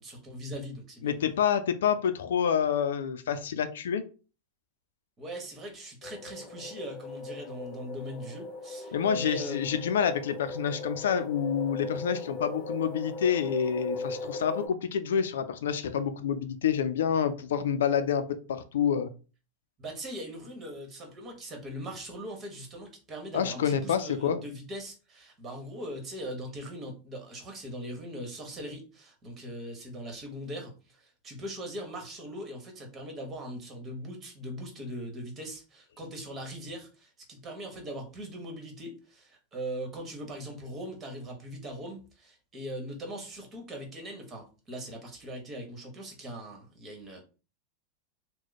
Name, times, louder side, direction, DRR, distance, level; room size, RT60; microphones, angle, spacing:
voice 1, 0.0-1.1 5.2-9.8 19.8-47.2, equal, 30° right, 2 dB, 1.4 m, -40 dB
voice 2, 1.0-4.0 8.9-19.1 23.3-24.4, left 8 dB, 80° left, 11 dB, 0.4 m, -28 dB
sound 1, 6.0-14.7, left 3 dB, 30° left, 1.2 m, -39 dB
3.0 x 2.2 x 4.0 m, 0.34 s
hypercardioid pair, 110°, 0 cm